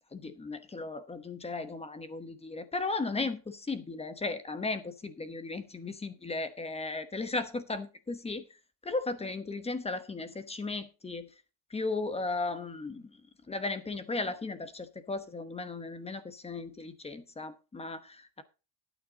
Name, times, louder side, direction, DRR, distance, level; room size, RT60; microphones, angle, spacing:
voice 1, 0.1-8.4 8.8-11.3 11.7-13.0 13.5-18.4, left 3 dB, 10° left, 1.0 m, -36 dB
12.0 x 9.2 x 3.9 m
cardioid pair, 140°, 49 cm